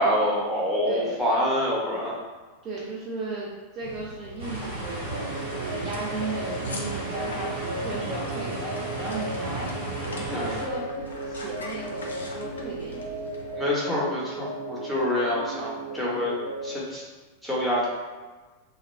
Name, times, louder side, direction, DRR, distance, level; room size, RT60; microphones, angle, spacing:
voice 1, 0.0-2.1 10.3-10.5 13.6-16.3 16.6-17.0 17.4-17.9, left 1 dB, ahead, -7 dB, 0.9 m, -26 dB
voice 2, 0.9-1.2 2.6-9.7 10.2-10.9 11.3-13.1 13.6-13.7, right 3 dB, 35° right, -5 dB, 0.5 m, -35 dB
sound 1, 3.8-13.6, left 2 dB, 70° left, 0.4 m, -42 dB
sound 2, 4.4-10.6, right 2 dB, 60° right, 1.2 m, -34 dB
sound 3, 5.1-16.8, right 2 dB, 90° right, 0.6 m, -36 dB
2.3 x 2.1 x 3.3 m, 1.3 s
figure-of-eight pair, 90°, 0 cm